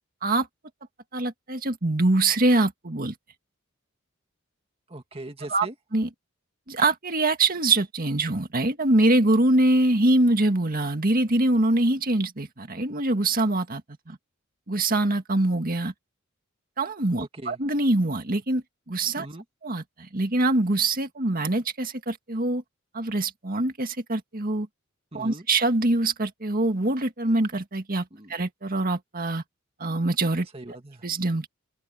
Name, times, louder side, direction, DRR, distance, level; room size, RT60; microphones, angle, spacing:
voice 1, 1.1-3.1 5.5-5.7 5.9-6.1 6.7-13.8 14.1-14.2 14.7-15.9 16.8-19.3 19.6-22.6 22.9-24.7 25.1-29.4 29.8-30.5 31.0-31.5, right 2 dB, 45° right, 2.0 m, -24 dB
voice 2, 4.9-5.8 17.2-17.6 19.2-19.4 25.1-25.5 28.1-28.3 30.5-31.1, right 2 dB, 30° right, 2.1 m, -40 dB
open air
head